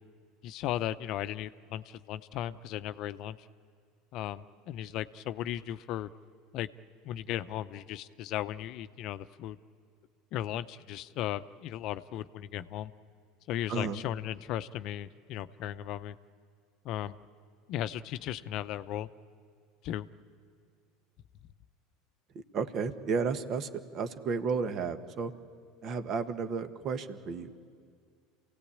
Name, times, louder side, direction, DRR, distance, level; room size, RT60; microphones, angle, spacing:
voice 1, 0.4-3.5 4.1-6.1 6.5-6.7 7.0-9.6 10.3-12.9 13.5-16.2 16.8-17.2 17.7-19.1 19.8-20.1, left 12 dB, 55° left, 13 dB, 0.6 m, -36 dB
voice 2, 22.5-25.3 25.8-27.5, right 5 dB, 50° right, 9 dB, 1.4 m, -32 dB
28.0 x 17.0 x 8.6 m, 2.1 s
hypercardioid pair, 85°, 0 cm